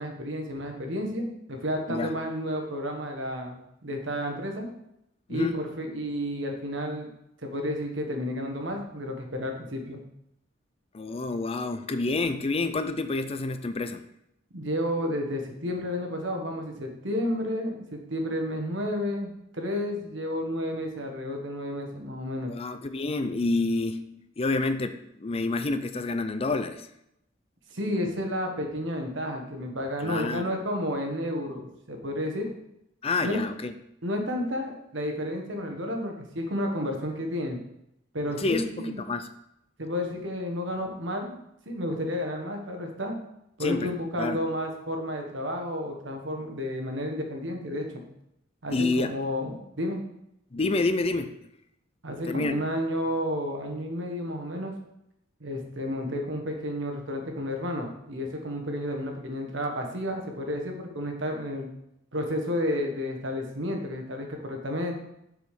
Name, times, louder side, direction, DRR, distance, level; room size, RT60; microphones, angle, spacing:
voice 1, 0.0-4.7 5.3-7.1 7.4-10.0 14.5-22.5 27.7-32.5 33.2-33.4 34.0-37.6 38.1-39.1 39.8-41.3 41.6-43.2 43.6-48.0 48.6-50.0 52.0-54.7 55.4-61.7 62.1-64.9, equal, 65° right, 3 dB, 1.5 m, -31 dB
voice 2, 10.9-14.0 22.5-24.0 24.4-26.9 30.0-30.5 33.0-33.7 38.4-39.3 43.6-43.9 44.2-44.4 48.7-49.1 50.5-51.3 52.3-52.6, left 3 dB, 30° left, 9 dB, 0.5 m, -28 dB
6.8 x 5.0 x 5.9 m, 0.80 s
head